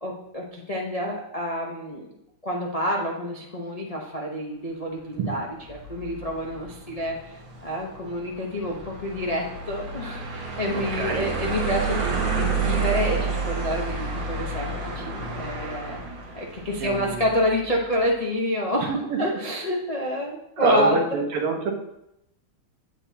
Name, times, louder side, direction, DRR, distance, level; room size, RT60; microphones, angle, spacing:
voice 1, 0.0-2.0 2.4-16.0 16.3-21.2, equal, 60° left, -2 dB, 0.3 m, -28 dB
sound 1, 5.6-17.7, right 4 dB, 60° right, 2.3 m, -30 dB
voice 2, 10.7-11.3 16.8-17.2 18.9-19.2 20.6-21.7, right 3 dB, 90° right, 1 dB, 2.2 m, -26 dB
9.7 x 8.4 x 2.8 m, 0.83 s
omnidirectional pair, 2.4 m